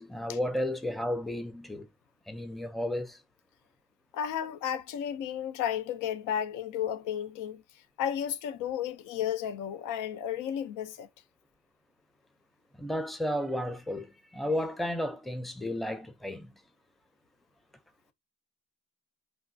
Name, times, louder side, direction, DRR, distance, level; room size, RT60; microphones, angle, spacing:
voice 1, 0.0-1.9 2.3-3.2 12.7-16.5, left 1 dB, ahead, 0.5 m, -33 dB
voice 2, 4.1-7.6 8.0-11.1, left 9 dB, 90° left, 0.5 m, -33 dB
3.4 x 2.3 x 2.6 m
cardioid pair, 90°, 30 cm